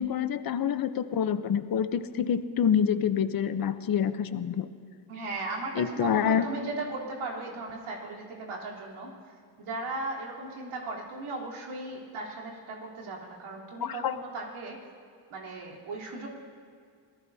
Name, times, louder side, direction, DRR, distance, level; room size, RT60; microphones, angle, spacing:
voice 1, 0.0-4.7 5.8-6.5 13.8-14.2, left 8 dB, 45° left, 10 dB, 0.8 m, -27 dB
voice 2, 5.1-9.1 9.6-14.8 15.3-16.3, right 2 dB, 80° right, -3 dB, 3.7 m, -37 dB
27.0 x 18.0 x 2.8 m, 2.2 s
cardioid pair, 95°, 49 cm